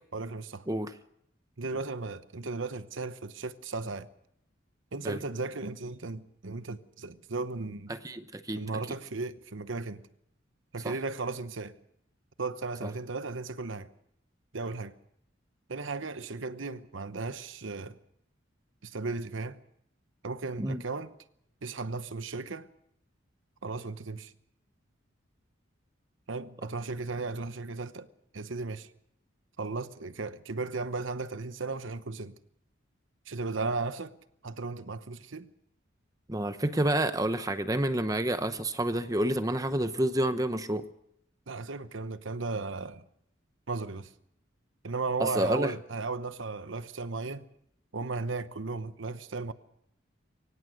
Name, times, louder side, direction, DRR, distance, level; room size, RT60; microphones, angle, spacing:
voice 1, 0.1-0.6 1.6-4.1 4.9-7.9 8.5-10.0 10.7-11.7 12.4-13.9 14.5-14.9 15.7-18.0 18.8-19.6 20.2-21.1 21.6-22.7 23.6-24.3 26.3-28.1 28.3-28.9 29.6-32.4 33.3-34.1 34.4-35.5 41.5-43.0 43.7-44.1 44.8-47.4 47.9-49.5, right 3 dB, 75° right, 1.0 m, -35 dB
voice 2, 7.9-8.6 10.8-11.0 12.8-12.9 20.6-20.8 36.3-40.8 45.2-45.7, right 1 dB, 15° right, 0.8 m, -29 dB
24.0 x 18.0 x 6.5 m
head